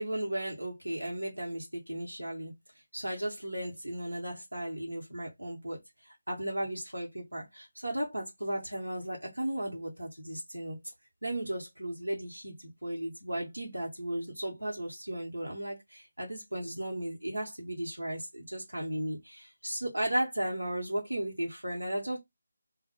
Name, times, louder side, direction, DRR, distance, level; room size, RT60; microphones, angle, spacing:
voice 1, 0.0-2.5 2.9-5.8 6.0-10.8 11.2-22.2, right 1 dB, 90° right, 0.8 m, -35 dB
2.1 x 2.1 x 2.9 m
figure-of-eight pair, 155°, 0 cm